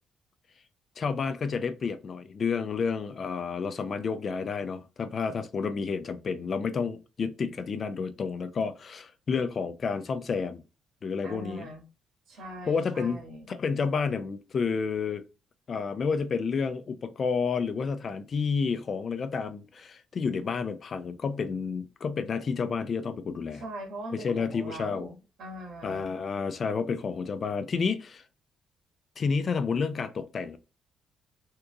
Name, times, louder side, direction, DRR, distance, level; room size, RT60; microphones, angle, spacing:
voice 1, 1.0-10.6 11.0-11.7 12.7-13.2 13.5-15.2 15.7-23.6 24.1-25.1 25.8-28.2 29.2-30.6, left 5 dB, 45° left, 0.5 m, -30 dB
voice 2, 11.2-11.8 12.3-13.5 23.5-26.1, right 1 dB, 75° right, 1.7 m, -41 dB
3.7 x 2.9 x 2.3 m
cardioid pair, 90°, 0 cm